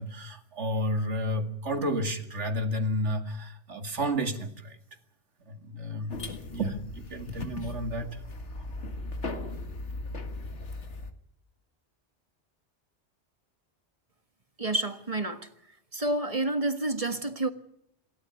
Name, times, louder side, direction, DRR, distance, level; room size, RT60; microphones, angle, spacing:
voice 1, 0.0-4.8 5.5-6.2 6.5-8.2, equal, 80° right, 2.5 m, -31 dB
sound 1, 6.1-11.1, left 2 dB, 80° left, 2.1 m, -38 dB
voice 2, 14.6-15.5 15.9-17.5, right 2 dB, 30° right, 1.6 m, -29 dB
27.5 x 13.0 x 9.1 m
omnidirectional pair, 1.2 m